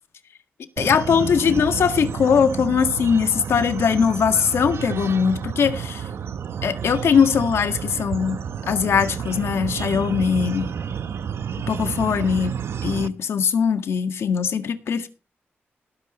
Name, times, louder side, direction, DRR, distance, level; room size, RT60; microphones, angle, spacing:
voice 1, 0.8-6.0 6.6-8.4 8.7-10.7 11.7-15.1, left 7 dB, 85° left, 1.7 m, -21 dB
sound 1, 0.8-13.1, right 7 dB, 80° right, 0.8 m, -30 dB
18.5 x 10.5 x 3.1 m
wide cardioid pair, 165°, 4 cm